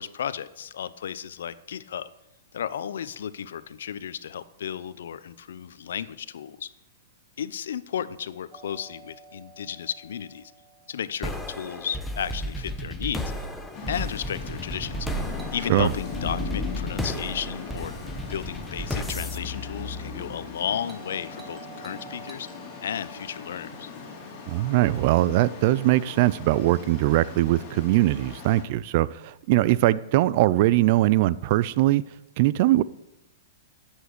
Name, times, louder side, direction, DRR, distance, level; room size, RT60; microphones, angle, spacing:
voice 1, 0.0-2.1 2.5-6.7 7.4-10.5 10.9-13.2 13.9-15.2 15.5-17.9 18.3-22.5 22.8-23.9, left 9 dB, 80° left, 15 dB, 0.7 m, -33 dB
Doorbell, 8.5-12.5 15.4-19.6 20.9-25.3, right 4 dB, 10° right, 1.3 m, -51 dB
sound 1, 11.2-20.7, left 1 dB, 5° left, 1.1 m, -33 dB
sound 2, 13.7-28.6, left 4 dB, 35° left, 3.9 m, -39 dB
voice 2, 24.5-32.0 32.4-32.8, right 16 dB, 50° right, 19 dB, 0.4 m, -21 dB
11.0 x 8.3 x 6.7 m, 0.91 s
hypercardioid pair, 145°, 0 cm